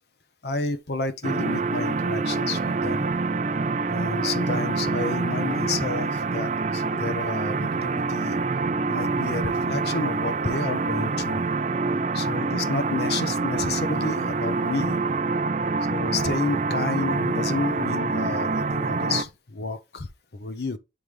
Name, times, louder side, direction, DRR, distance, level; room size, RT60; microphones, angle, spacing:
voice 1, 0.4-3.1 3.9-8.4 8.9-11.4 12.1-15.0 15.9-20.8, left 3 dB, 60° left, 0.8 m, -30 dB
sound 1, 1.2-19.2, right 3 dB, 40° right, 0.4 m, -26 dB
9.1 x 3.3 x 3.3 m
head